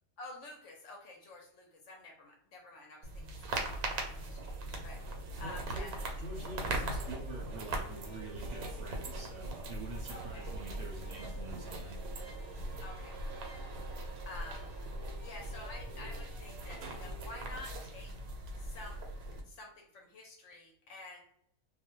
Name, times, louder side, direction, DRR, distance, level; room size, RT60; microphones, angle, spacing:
voice 1, 0.2-3.3 3.5-5.0 5.4-6.1 10.1-10.5 12.8-13.5 14.3-14.7 15.2-18.1 18.6-18.9 19.4-21.2, left 2 dB, 65° left, 0 dB, 0.8 m, -50 dB
sound 1, 3.0-19.4, right 2 dB, 90° right, 1.1 m, -40 dB
voice 2, 5.4-12.0, right 2 dB, 65° right, -1 dB, 0.8 m, -46 dB
sound 2, 6.3-17.6, equal, 35° right, 0.4 m, -56 dB
2.4 x 2.1 x 2.9 m, 0.71 s
omnidirectional pair, 1.5 m